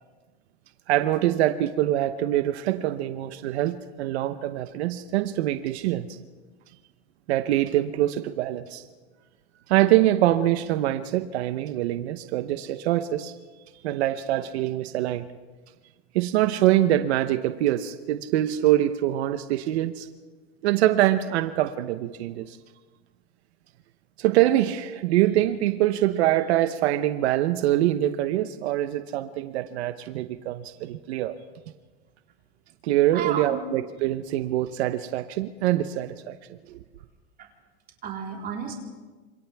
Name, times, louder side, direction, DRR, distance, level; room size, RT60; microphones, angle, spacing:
voice 1, 0.9-6.2 7.3-8.8 9.7-13.3 13.8-15.3 16.1-20.1 20.6-22.6 24.2-31.4 32.8-36.4 36.7-36.8, right 13 dB, 80° right, 9 dB, 1.0 m, -24 dB
voice 2, 33.1-33.6 37.4-37.5 38.0-38.7, right 7 dB, 30° right, -1 dB, 4.1 m, -32 dB
28.0 x 27.0 x 3.5 m, 1.3 s
supercardioid pair, 150°, 32 cm